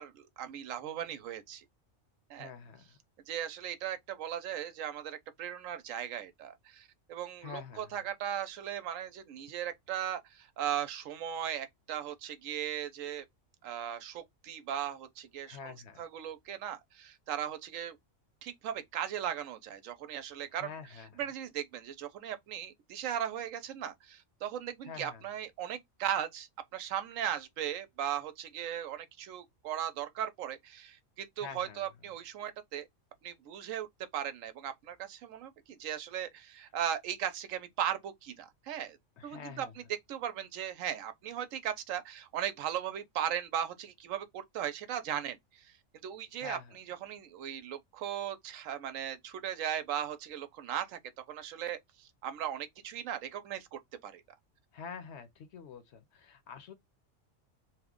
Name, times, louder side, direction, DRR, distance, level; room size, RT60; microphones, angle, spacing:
voice 1, 0.0-1.6 2.3-2.5 3.3-13.2 13.6-15.7 16.0-18.0 18.4-20.7 21.2-32.9 33.2-33.9 34.1-39.0 39.2-39.8 40.1-45.7 46.0-51.0 51.3-54.2, right 10 dB, 80° right, 1.0 m, -37 dB
voice 2, 2.4-3.0 7.4-8.0 15.4-16.0 20.6-21.2 24.8-25.2 31.4-31.8 39.2-39.8 46.4-46.8 54.7-56.7, left 6 dB, 65° left, 0.8 m, -46 dB
2.9 x 2.1 x 3.5 m
omnidirectional pair, 1.4 m